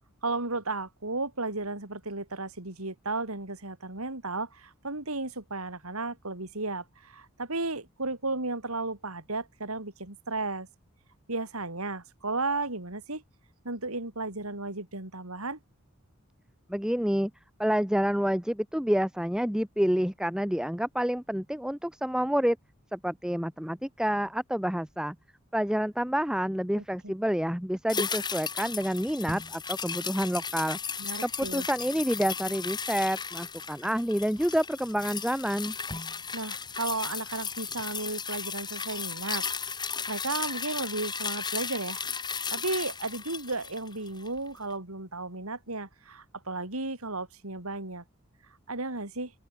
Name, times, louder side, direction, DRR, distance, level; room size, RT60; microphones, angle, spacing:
voice 1, 0.2-10.7 11.3-13.2 13.6-15.6 26.8-26.9 31.0-31.7 36.3-39.4 40.1-42.1 42.5-48.0 48.7-49.3, right 3 dB, 85° right, 4.6 m, -34 dB
voice 2, 16.7-17.3 17.6-22.6 22.9-25.2 25.5-30.8 31.2-35.7, equal, 5° right, 0.7 m, -28 dB
sound 1, 27.9-44.4 44.7-44.8, left 6 dB, 20° left, 4.9 m, -35 dB
open air
head